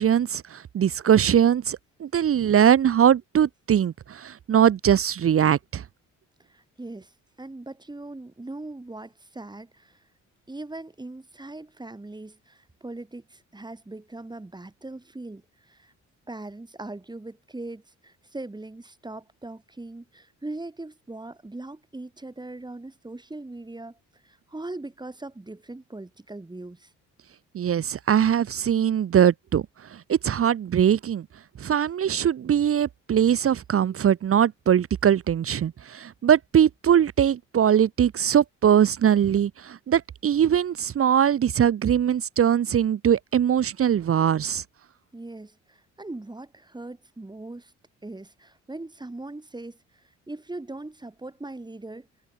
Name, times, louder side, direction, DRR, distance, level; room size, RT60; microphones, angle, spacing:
voice 1, 0.0-5.8 27.5-29.6 29.9-31.2 31.6-44.6, right 9 dB, 45° right, 1.0 m, -21 dB
voice 2, 6.5-7.1 7.4-10.0 10.5-15.9 16.3-24.0 24.2-26.9 45.1-47.7 48.0-49.8 50.3-52.1, right 2 dB, 15° right, 3.6 m, -40 dB
cardioid pair, 90°, 30 cm